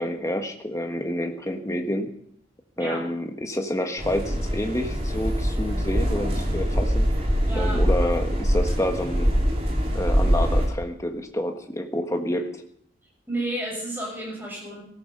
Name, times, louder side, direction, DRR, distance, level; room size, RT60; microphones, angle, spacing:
voice 1, 0.0-2.1 2.8-7.3 7.5-9.3 9.9-12.6, equal, 15° left, 5 dB, 1.4 m, -28 dB
sound 1, 4.0-10.7, equal, 30° right, 3.4 m, -23 dB
voice 2, 7.4-7.8 13.3-14.8, right 1 dB, 10° right, -2 dB, 6.6 m, -31 dB
17.0 x 14.0 x 5.5 m, 0.68 s
head